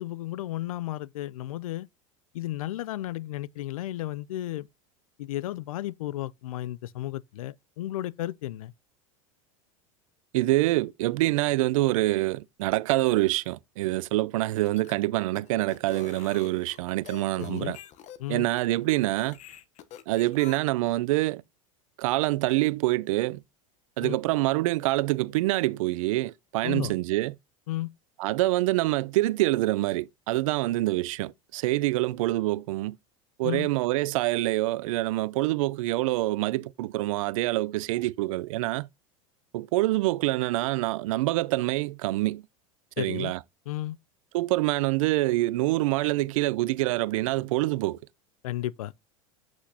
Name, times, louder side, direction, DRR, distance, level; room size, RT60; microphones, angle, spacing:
voice 1, 0.0-1.9 2.3-4.7 5.2-8.7 17.4-17.7 18.2-18.5 24.0-24.2 26.6-26.9 27.7-27.9 33.4-33.7 43.0-43.3 43.7-44.0 48.4-48.9, left 15 dB, 85° left, 0.4 m, -33 dB
voice 2, 10.3-17.8 18.3-19.4 20.1-21.4 22.0-23.4 24.0-27.4 28.2-33.0 33.4-38.9 39.5-42.4 43.0-43.4 44.3-48.0, right 18 dB, 75° right, 0.5 m, -26 dB
sound 1, 14.5-20.6, left 10 dB, 45° left, 0.9 m, -47 dB
7.8 x 6.2 x 2.7 m
hypercardioid pair, 105°, 17 cm